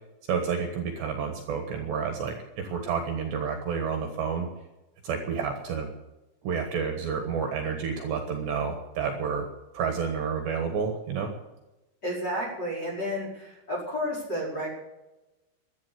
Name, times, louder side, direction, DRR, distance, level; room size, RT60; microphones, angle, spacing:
voice 1, 0.3-4.5 5.0-5.9 6.4-9.5 9.7-11.3, right 6 dB, 65° right, 4 dB, 3.2 m, -30 dB
voice 2, 12.0-14.7, equal, 20° left, -1 dB, 5.0 m, -31 dB
13.5 x 10.5 x 8.4 m, 1.0 s
omnidirectional pair, 5.9 m